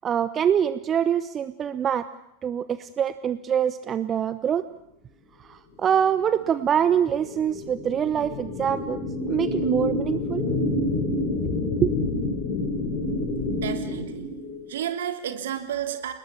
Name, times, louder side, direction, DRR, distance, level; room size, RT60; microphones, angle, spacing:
voice 1, 0.0-2.1 2.4-4.6 5.5-9.0 9.3-10.4 11.8-11.9, right 8 dB, 25° right, 13 dB, 0.9 m, -24 dB
sound 1, 6.0-14.7, left 2 dB, 40° left, 5.0 m, -28 dB
voice 2, 13.5-14.3 14.7-16.1, right 9 dB, 60° right, 6 dB, 3.1 m, -31 dB
29.5 x 20.0 x 7.3 m, 0.81 s
figure-of-eight pair, 90°, 0 cm